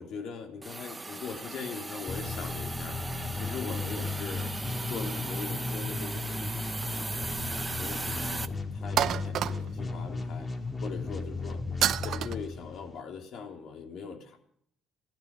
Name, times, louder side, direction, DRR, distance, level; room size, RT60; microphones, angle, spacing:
voice 1, 0.0-4.6 4.9-7.3 7.8-10.5 10.8-11.6 12.0-14.4, left 6 dB, 65° left, 2 dB, 3.2 m, -41 dB
Hiss, 0.6-8.5, right 3 dB, 20° right, 1.3 m, -37 dB
sound 1, 2.1-13.0, left 3 dB, 30° left, 2.5 m, -35 dB
sound 2, 6.8-7.6 7.9-8.0 9.0-9.9 11.8-12.3, right 10 dB, 60° right, 0.7 m, -29 dB
16.5 x 12.0 x 6.2 m, 0.68 s
hypercardioid pair, 60°, 0 cm